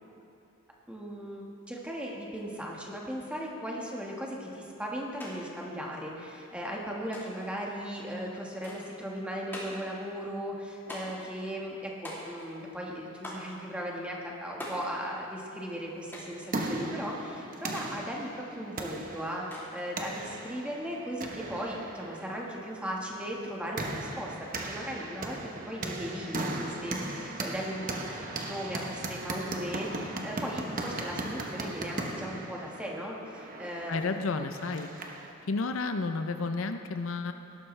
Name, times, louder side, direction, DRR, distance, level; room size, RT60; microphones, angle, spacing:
voice 1, 0.9-25.4 25.6-34.1, equal, 5° right, -2 dB, 1.5 m, -37 dB
sound 1, 5.2-5.3 5.6-6.3 7.1-7.5 8.6-9.0 9.5-9.9 10.9-11.3 12.0-12.6 13.2-13.5 14.6-14.9 16.1-16.4 17.7-18.0 19.5-19.9, left 1 dB, 10° left, 2.8 m, -42 dB
sound 2, 16.1-35.3, right 2 dB, 40° right, 1.1 m, -38 dB
voice 2, 33.9-34.9 35.5-37.3, left 3 dB, 75° left, 7 dB, 0.6 m, -31 dB
18.0 x 11.5 x 3.3 m, 2.7 s
head